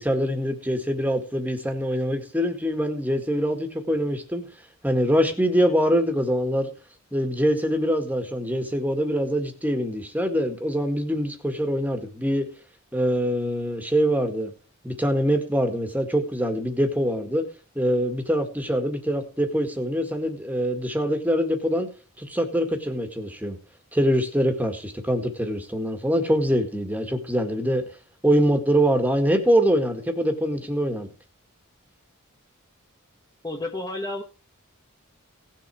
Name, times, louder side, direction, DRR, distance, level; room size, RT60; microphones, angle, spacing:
voice 1, 0.0-4.4 4.8-6.7 7.1-12.5 12.9-14.5 14.8-17.5 17.8-21.9 22.2-23.6 23.9-27.8 28.2-31.1, equal, 10° right, 6 dB, 1.9 m, -24 dB
voice 2, 33.4-34.2, left 2 dB, 15° left, 2 dB, 1.1 m, -31 dB
17.5 x 7.4 x 4.8 m, 0.35 s
head